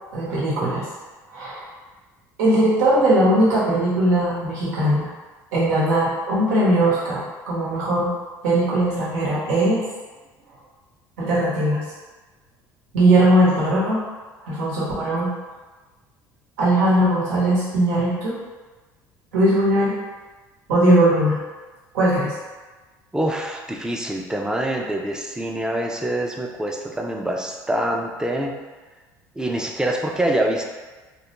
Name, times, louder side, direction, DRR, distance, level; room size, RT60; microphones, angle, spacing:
voice 1, 0.1-0.9 1.3-1.7 2.4-5.1 5.5-8.1 8.4-9.8 11.2-11.8 12.9-14.0 14.4-15.3 16.6-18.4 19.3-20.0 20.7-21.4 21.9-22.3, right 1 dB, 90° right, -7 dB, 0.9 m, -19 dB
voice 2, 23.1-28.5 29.4-30.6, right 1 dB, 10° right, 1 dB, 0.4 m, -25 dB
2.3 x 2.1 x 2.9 m, 1.3 s
supercardioid pair, 80°, 9 cm